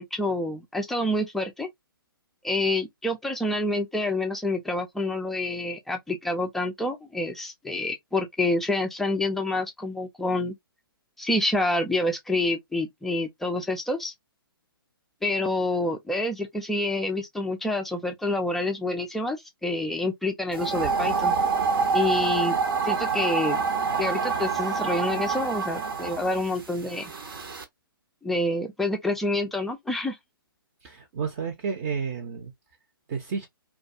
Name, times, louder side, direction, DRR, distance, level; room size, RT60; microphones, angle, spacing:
voice 1, 0.0-1.7 2.4-10.5 11.2-14.1 15.2-19.4 19.6-21.3 21.9-22.6 22.8-23.6 24.0-27.1 28.2-30.2, left 2 dB, ahead, 0.3 m, -27 dB
sound 1, 20.5-27.6, right 5 dB, 70° right, 0.8 m, -27 dB
voice 2, 30.8-32.5 33.1-33.5, right 6 dB, 35° right, 0.6 m, -31 dB
2.3 x 2.3 x 2.6 m
figure-of-eight pair, 130°, 12 cm